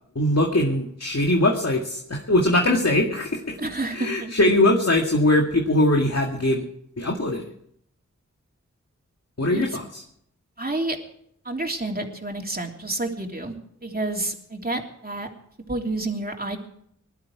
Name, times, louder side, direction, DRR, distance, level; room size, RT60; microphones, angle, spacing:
voice 1, 0.2-3.6 3.9-6.6 7.0-7.4 9.4-10.0, left 1 dB, 55° left, 1 dB, 2.0 m, -21 dB
voice 2, 3.6-4.3 9.5-9.8 10.6-11.0 11.4-13.5 13.8-15.3 15.7-16.6, right 2 dB, 30° right, 2 dB, 3.1 m, -29 dB
20.0 x 12.0 x 4.8 m, 0.69 s
wide cardioid pair, 50°, 30 cm